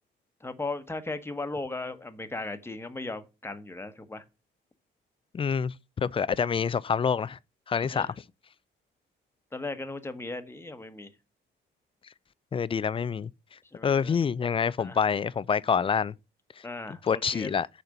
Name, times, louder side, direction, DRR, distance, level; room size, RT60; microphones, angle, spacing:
voice 1, 0.4-4.2 7.8-8.1 9.5-11.1 13.7-14.2 14.8-15.0 16.6-17.7, left 2 dB, 10° left, 1.1 m, -37 dB
voice 2, 5.3-7.4 7.7-8.1 12.5-13.3 13.8-16.1 17.0-17.7, left 6 dB, 25° left, 0.4 m, -27 dB
6.7 x 4.3 x 6.5 m
cardioid pair, 90°, 20 cm